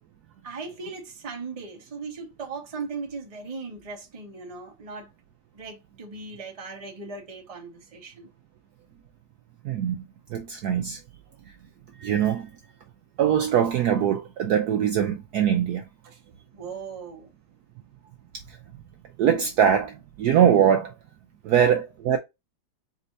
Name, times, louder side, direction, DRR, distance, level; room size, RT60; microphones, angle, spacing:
voice 1, 0.4-5.1 5.5-8.3 16.0-16.2 16.5-17.3, right 4 dB, 25° right, 0.9 m, -38 dB
voice 2, 9.6-10.0 10.3-11.0 12.0-12.5 13.2-15.8 19.2-20.9 21.4-22.2, right 9 dB, 70° right, 1.0 m, -22 dB
4.2 x 2.7 x 3.9 m
omnidirectional pair, 2.0 m